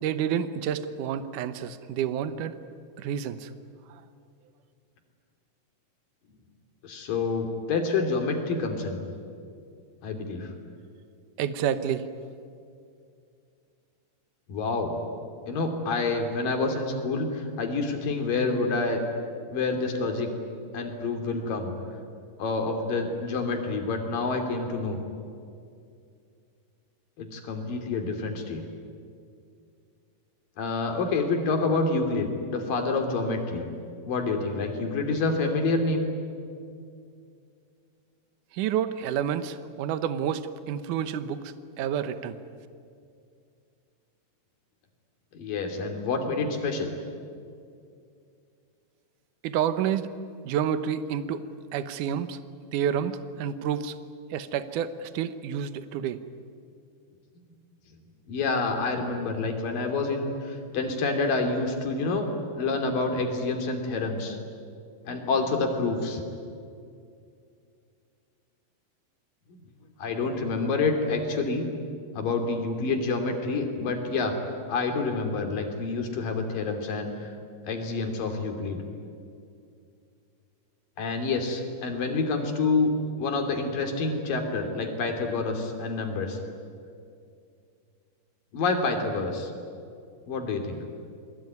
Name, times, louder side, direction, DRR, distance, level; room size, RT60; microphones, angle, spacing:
voice 1, 0.0-2.5 3.0-3.5 3.9-4.0 11.4-12.1 38.5-42.4 49.4-50.1 50.5-51.5 51.7-52.4 52.7-54.0 54.3-56.2, right 9 dB, 70° right, 11 dB, 2.5 m, -29 dB
voice 2, 6.8-9.0 10.0-10.5 14.5-15.0 15.5-19.0 19.5-20.3 20.7-21.7 22.4-25.0 27.2-28.6 30.6-33.7 34.0-36.1 45.4-47.0 58.3-62.3 62.5-64.4 65.1-66.2 69.5-69.6 70.0-71.7 72.1-74.4 74.7-77.3 77.7-78.8 81.0-82.9 83.2-86.4 88.5-89.5 90.3-90.8, left 3 dB, 75° left, 4 dB, 4.6 m, -28 dB
28.0 x 21.5 x 9.5 m, 2.4 s
omnidirectional pair, 4.0 m